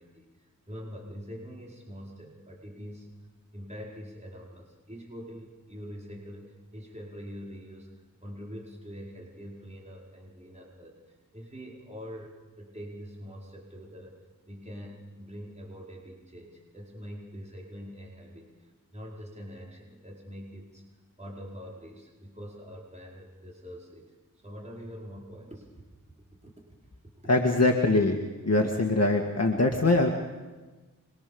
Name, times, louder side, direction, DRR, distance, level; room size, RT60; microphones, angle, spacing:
voice 1, 0.0-3.1 3.5-14.1 14.5-20.8 21.2-24.2 24.4-25.8 26.4-26.5 27.2-27.3, equal, 20° right, -3 dB, 5.1 m, -44 dB
voice 2, 27.3-30.1, left 2 dB, 50° left, 2 dB, 2.2 m, -23 dB
26.5 x 23.5 x 7.1 m, 1.2 s
wide cardioid pair, 85°, 33 cm